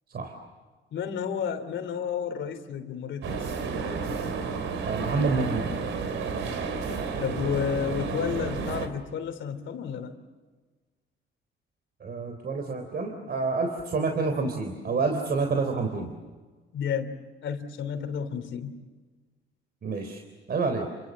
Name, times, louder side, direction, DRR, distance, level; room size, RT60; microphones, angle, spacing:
voice 1, 0.9-3.5 7.2-10.2 16.7-17.1 17.4-18.8, left 7 dB, 70° left, 8 dB, 3.1 m, -31 dB
sound 1, 3.2-8.9, right 5 dB, 75° right, 3.4 m, -31 dB
voice 2, 4.8-5.7 12.0-16.2 19.8-20.2 20.5-20.9, right 4 dB, 50° right, 5 dB, 3.7 m, -28 dB
29.5 x 25.5 x 7.4 m, 1.3 s
cardioid pair, 90°, 20 cm